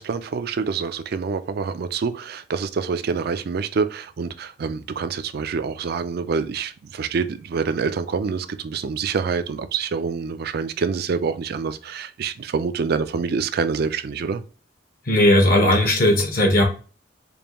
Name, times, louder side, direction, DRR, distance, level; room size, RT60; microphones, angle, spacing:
voice 1, 0.0-14.4, right 5 dB, 55° right, 0.4 m, -26 dB
voice 2, 15.1-16.6, left 1 dB, 50° left, 0.8 m, -17 dB
5.1 x 2.3 x 2.9 m
head